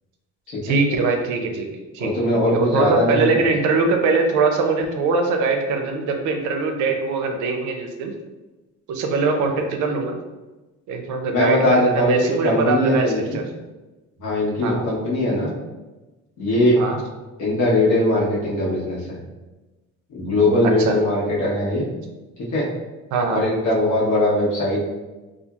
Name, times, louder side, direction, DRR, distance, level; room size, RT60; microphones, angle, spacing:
voice 1, 0.6-1.7 1.9-2.1 2.5-8.1 8.9-10.2 10.9-13.4 14.6-14.9 16.8-17.0 20.8-21.0 23.1-23.4, right 4 dB, 75° right, 4 dB, 0.5 m, -22 dB
voice 2, 2.0-3.4 11.3-13.4 14.2-15.5 16.4-16.8 17.4-19.2 20.1-21.9 22.5-22.7 23.2-24.8, left 1 dB, 80° left, -5 dB, 1.1 m, -20 dB
2.9 x 2.4 x 2.3 m, 1.1 s
cardioid pair, 160°, 30 cm